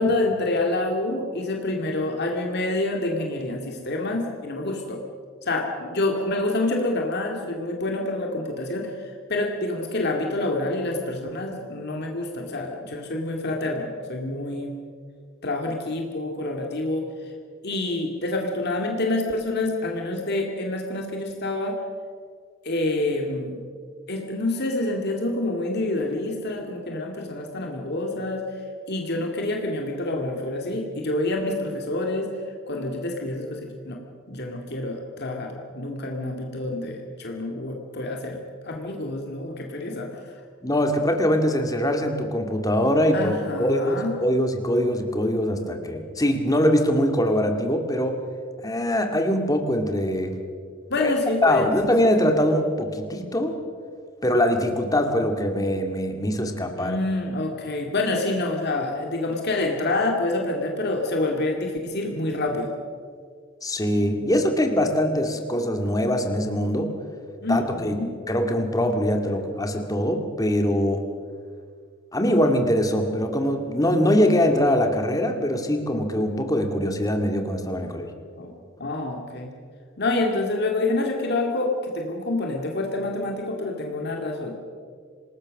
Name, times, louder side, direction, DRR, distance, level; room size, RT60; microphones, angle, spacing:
voice 1, 0.0-5.0 5.4-14.7 15.4-17.1 17.6-21.8 22.6-23.6 24.1-28.4 28.9-32.3 32.7-34.0 34.3-40.1 43.1-44.1 50.9-51.7 56.8-62.7 67.4-68.1 78.4-78.5 78.8-79.5 80.0-84.5, left 2 dB, 50° left, 1 dB, 2.4 m, -27 dB
voice 2, 40.6-48.2 48.6-50.3 51.0-51.1 51.4-53.5 54.2-57.0 63.6-66.9 67.5-67.9 68.3-71.1 72.1-78.1, equal, 15° left, 4 dB, 2.1 m, -23 dB
27.0 x 19.0 x 6.5 m, 2.1 s
head